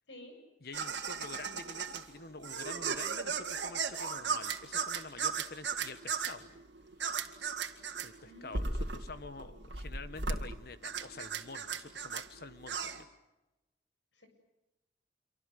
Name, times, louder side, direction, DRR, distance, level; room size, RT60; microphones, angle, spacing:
voice 1, 0.6-6.5 8.0-13.1, left 3 dB, 55° left, 12 dB, 1.1 m, -47 dB
sound 1, 0.7-13.0, right 5 dB, 75° right, 2.4 m, -36 dB
voice 2, 8.2-8.8 14.1-14.3, left 1 dB, 85° left, 5 dB, 7.9 m, -51 dB
27.0 x 25.0 x 8.1 m, 1.0 s
head